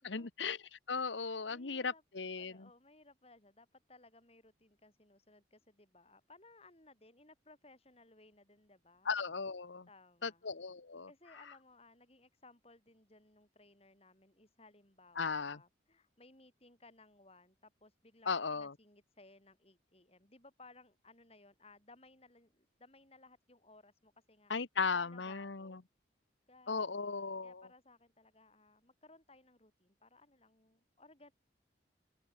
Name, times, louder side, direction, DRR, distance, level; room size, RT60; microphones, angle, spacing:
voice 1, 0.0-0.6 0.9-2.5 9.1-9.9 10.2-11.1 15.2-15.6 18.3-18.7 24.5-25.8 26.7-27.6, left 5 dB, 75° left, 1.1 m, -36 dB
voice 2, 1.5-2.0 2.3-9.1 9.9-10.5 11.1-24.5 24.9-25.9 26.5-31.3, left 2 dB, 30° left, 6.6 m, -62 dB
head